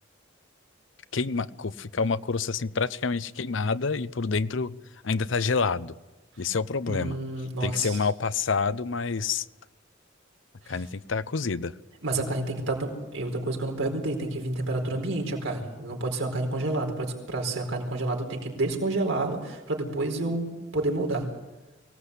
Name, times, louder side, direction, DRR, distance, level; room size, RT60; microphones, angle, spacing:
voice 1, 1.1-4.8 5.0-6.0 6.4-7.2 7.6-9.4 10.7-11.7, left 4 dB, 75° left, 15 dB, 0.7 m, -28 dB
voice 2, 6.9-8.0 10.6-10.8 12.0-21.3, right 2 dB, 90° right, 2 dB, 4.6 m, -29 dB
23.5 x 17.5 x 8.3 m, 1.1 s
head